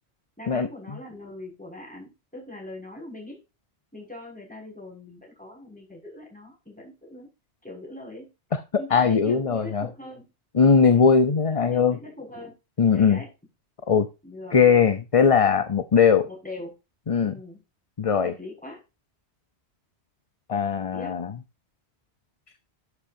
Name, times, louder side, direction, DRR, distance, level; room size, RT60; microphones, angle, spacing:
voice 1, 0.4-3.4 3.9-7.3 7.6-8.3 8.8-10.3 10.8-11.1 11.7-12.6 12.9-13.3 14.2-14.6 16.3-16.7 17.2-17.6 18.2-18.8 20.9-21.2, left 2 dB, 5° left, -2 dB, 6.5 m, -41 dB
voice 2, 8.9-9.9 10.5-12.0 12.8-13.2 13.9-14.1 14.5-16.3 17.1-17.3 18.0-18.3 20.5-21.3, left 6 dB, 35° left, 11 dB, 0.8 m, -19 dB
12.0 x 8.4 x 2.7 m, 0.27 s
omnidirectional pair, 1.1 m